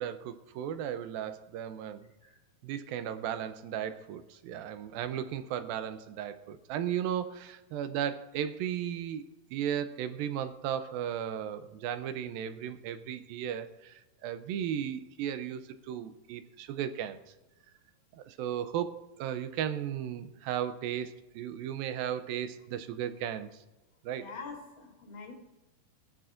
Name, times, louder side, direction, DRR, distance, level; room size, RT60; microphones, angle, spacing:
voice 1, 0.0-2.0 2.6-9.2 9.5-17.2 18.2-23.5 24.0-24.3, right 9 dB, 80° right, 10 dB, 2.3 m, -35 dB
voice 2, 24.2-25.3, left 4 dB, 35° left, 0 dB, 3.7 m, -44 dB
20.0 x 12.0 x 2.5 m, 1.1 s
omnidirectional pair, 4.5 m